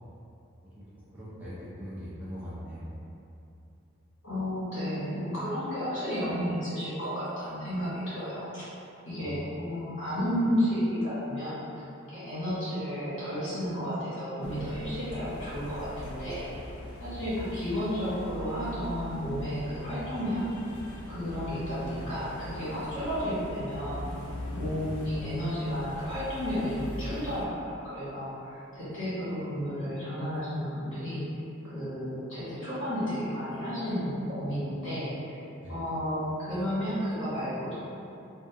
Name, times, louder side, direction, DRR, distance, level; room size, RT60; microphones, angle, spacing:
voice 1, 1.1-2.9 9.2-9.5 17.2-17.3 35.6-35.8, equal, 5° right, -11 dB, 0.4 m, -41 dB
voice 2, 4.2-8.6 9.0-11.6 12.1-16.5 17.0-20.5 21.1-31.2 31.6-35.1 35.7-37.7, equal, 65° left, -12 dB, 1.4 m, -32 dB
sound 1, 14.4-27.5, left 1 dB, 85° left, 0.3 m, -41 dB
2.6 x 2.3 x 2.4 m, 2.7 s
head